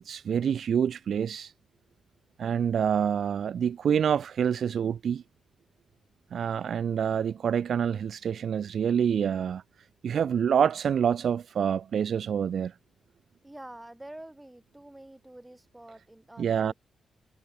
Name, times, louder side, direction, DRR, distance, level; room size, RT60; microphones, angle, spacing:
voice 1, 0.0-1.5 2.4-5.2 6.3-9.6 10.0-12.7 16.4-16.7, right 8 dB, 70° right, 1.0 m, -27 dB
voice 2, 13.4-16.7, right 1 dB, 15° right, 7.8 m, -47 dB
supercardioid pair, 45°, 0 cm